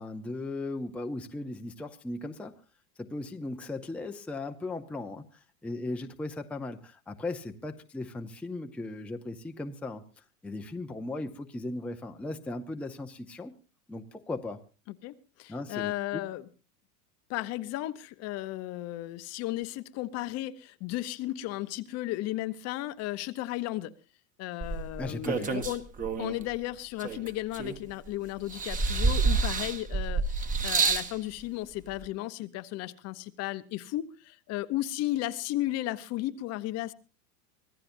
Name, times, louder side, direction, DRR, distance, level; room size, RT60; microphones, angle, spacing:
voice 1, 0.0-2.5 3.0-10.0 10.4-13.5 13.9-14.6 15.5-16.2 25.0-25.6, left 2 dB, 5° left, 0.7 m, -37 dB
voice 2, 14.9-16.4 17.3-23.9 24.4-25.9 26.2-36.9, left 16 dB, 35° left, 0.8 m, -34 dB
sound 1, 24.6-26.4 27.0-28.1 28.5-31.1 32.0-32.1, right 4 dB, 15° right, 1.2 m, -28 dB
25.0 x 16.5 x 2.6 m
supercardioid pair, 140°, 45 cm